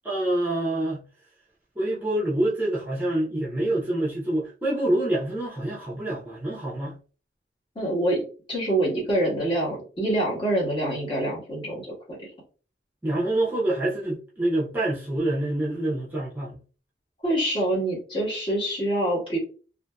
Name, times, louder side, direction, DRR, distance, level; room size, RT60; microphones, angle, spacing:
voice 1, 0.0-1.1 1.8-7.0 13.0-16.6, right 1 dB, 10° right, 0.6 m, -26 dB
voice 2, 7.7-11.9 12.2-12.3 17.2-19.4, right 1 dB, 30° left, 1.3 m, -26 dB
2.6 x 2.6 x 2.2 m
head